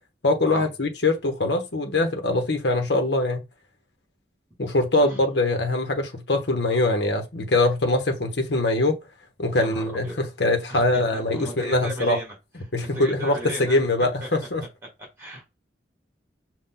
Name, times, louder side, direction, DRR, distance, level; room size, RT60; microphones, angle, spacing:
voice 1, 0.2-3.4 4.6-9.0 9.4-12.2 12.7-14.6, left 2 dB, 70° left, 0.9 m, -23 dB
voice 2, 9.6-10.1 10.7-12.3 12.8-13.8 14.2-14.3 15.2-15.5, right 1 dB, 15° right, 1.9 m, -36 dB
5.5 x 2.3 x 3.7 m
head